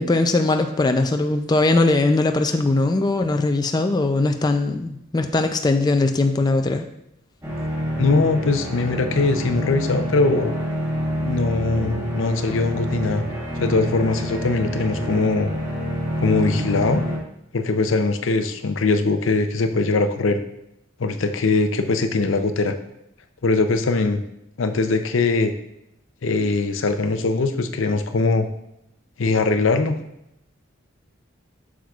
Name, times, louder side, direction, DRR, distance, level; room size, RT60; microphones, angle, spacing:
voice 1, 0.0-6.9, left 2 dB, 20° left, 6 dB, 0.4 m, -20 dB
sound 1, 7.4-17.2, equal, 15° right, 1.3 m, -27 dB
voice 2, 8.0-10.5 11.2-13.2 13.6-15.5 16.2-17.0 17.5-20.4 21.0-22.7 23.4-24.2 24.6-25.5 26.2-28.5 29.2-30.0, left 3 dB, 80° left, 8 dB, 0.6 m, -21 dB
7.9 x 6.2 x 2.4 m, 0.81 s
head